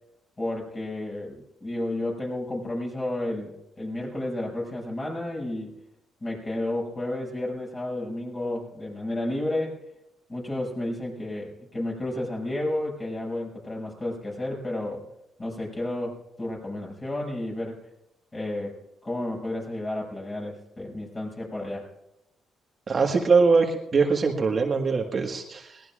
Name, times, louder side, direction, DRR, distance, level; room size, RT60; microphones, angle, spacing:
voice 1, 0.4-5.7 6.2-9.8 10.3-15.0 15.4-17.8 18.3-18.8 19.0-21.9, left 1 dB, 25° left, -3 dB, 6.8 m, -31 dB
voice 2, 22.9-25.8, right 4 dB, 40° right, 2 dB, 1.6 m, -22 dB
21.5 x 18.5 x 2.5 m, 0.85 s
cardioid pair, 90°, 0 cm